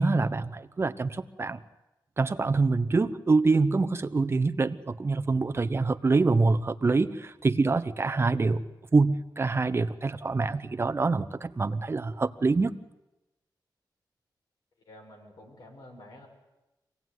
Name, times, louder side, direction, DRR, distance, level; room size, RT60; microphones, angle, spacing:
voice 1, 0.0-1.6 2.2-8.6 8.9-12.8, right 3 dB, 35° right, 11 dB, 0.9 m, -25 dB
voice 2, 14.9-16.3, left 1 dB, 70° left, 0 dB, 6.0 m, -49 dB
25.5 x 17.0 x 9.5 m, 1.0 s
wide cardioid pair, 135°, 8 cm